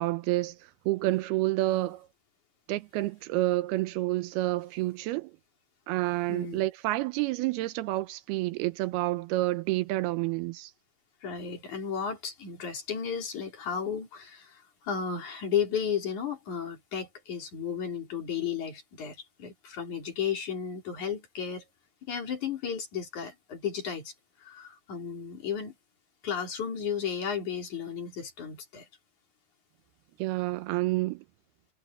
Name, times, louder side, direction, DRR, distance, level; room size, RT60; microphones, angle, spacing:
voice 1, 0.0-2.1 2.7-5.3 5.9-10.7 30.2-31.2, right 18 dB, 80° right, 2.6 m, -29 dB
voice 2, 6.3-6.6 11.2-21.6 22.1-25.7 26.2-28.9, left 7 dB, 50° left, 4.9 m, -34 dB
omnidirectional pair, 4.6 m